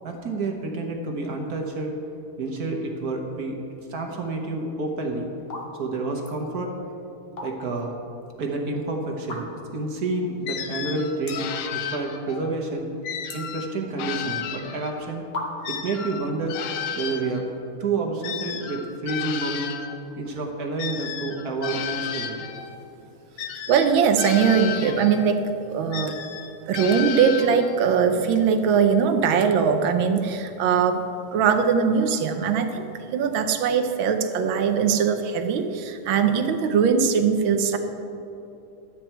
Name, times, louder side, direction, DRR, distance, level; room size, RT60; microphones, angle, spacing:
voice 1, 0.0-1.9 2.4-3.6 3.9-5.3 5.8-6.7 7.4-7.9 8.4-11.4 11.9-12.9 13.3-15.2 15.7-16.6 16.9-17.4 17.8-19.7 20.2-22.4, right 3 dB, 55° right, 1 dB, 1.4 m, -29 dB
sound 1, 4.7-4.9 5.4-5.7 6.0-6.4 7.1-7.9 8.2-8.3 9.2-9.8 10.3-10.4 10.6-10.7 11.2-11.6 12.0-12.4 12.7-14.1 14.8-14.9 15.3-15.9, left 2 dB, 35° left, 1.2 m, -36 dB
sound 2, 10.5-12.5 13.0-15.1 15.6-20.0 20.8-22.8 23.4-25.4 25.9-27.9, left 8 dB, 80° left, 1.6 m, -33 dB
voice 2, 23.7-26.2 26.7-31.1 31.3-32.9 33.1-37.8, right 6 dB, 75° right, 6 dB, 1.5 m, -21 dB
12.0 x 9.3 x 4.5 m, 2.9 s
omnidirectional pair, 2.3 m